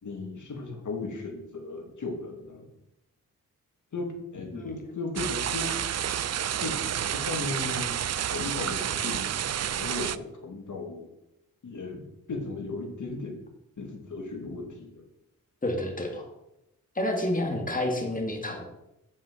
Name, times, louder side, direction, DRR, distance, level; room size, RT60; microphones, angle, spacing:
voice 1, 0.0-2.6 3.9-5.7 6.6-6.8 7.1-8.0 8.3-9.3 9.7-11.1 11.6-12.0 12.3-13.4 13.8-15.1, left 3 dB, 60° left, 1 dB, 2.5 m, -36 dB
sound 1, 5.2-10.2, right 10 dB, 50° right, 0.5 m, -30 dB
voice 2, 15.6-16.3 17.0-18.6, left 1 dB, 25° left, 2 dB, 2.4 m, -29 dB
7.2 x 5.9 x 7.6 m, 0.87 s
cardioid pair, 65°, 34 cm